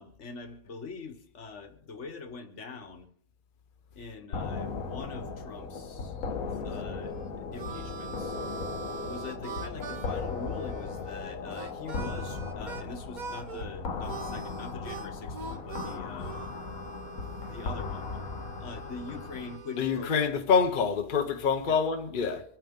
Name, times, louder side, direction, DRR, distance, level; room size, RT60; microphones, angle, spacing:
voice 1, 0.0-3.1 3.9-6.2 6.6-8.4 9.0-16.3 17.5-18.1 18.6-20.5 21.6-21.8 22.1-22.3, left 4 dB, 60° left, 1.5 m, -43 dB
sound 1, 4.3-19.6, left 4 dB, 85° left, 1.6 m, -37 dB
Harmonica, 7.1-12.9 13.1-13.7 14.0-20.1, right 5 dB, 40° right, 0.8 m, -43 dB
voice 2, 19.8-22.4, left 5 dB, 45° left, 0.9 m, -26 dB
25.5 x 9.0 x 3.7 m
omnidirectional pair, 1.4 m